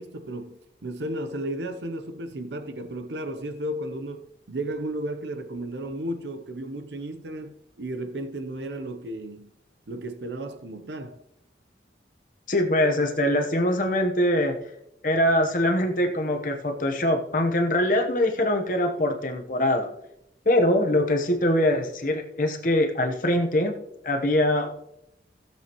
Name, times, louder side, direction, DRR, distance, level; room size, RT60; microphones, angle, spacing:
voice 1, 0.0-9.5 9.9-11.2, right 1 dB, 85° right, 0.8 m, -34 dB
voice 2, 12.5-14.6 15.0-19.9 20.5-23.7 24.0-24.7, left 1 dB, 50° left, 1.0 m, -23 dB
16.5 x 7.1 x 3.0 m
head